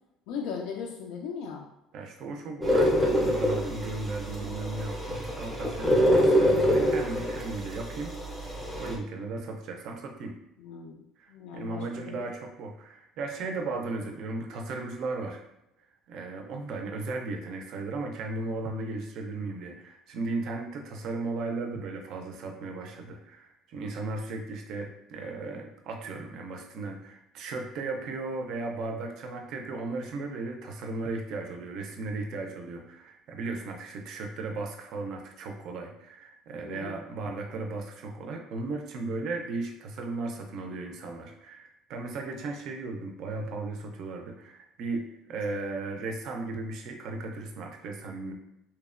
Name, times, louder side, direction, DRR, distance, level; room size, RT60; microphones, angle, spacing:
voice 1, 0.3-1.7 10.6-11.0 11.3-12.3 36.6-37.0, left 6 dB, 80° left, 0 dB, 0.3 m, -38 dB
voice 2, 1.9-8.2 8.8-10.4 11.2-15.4 16.1-48.3, right 3 dB, 55° right, 3 dB, 0.4 m, -36 dB
sound 1, 2.6-8.9, equal, 5° left, 0.5 m, -26 dB
2.8 x 2.1 x 2.4 m, 0.86 s
cardioid pair, 150°, 0 cm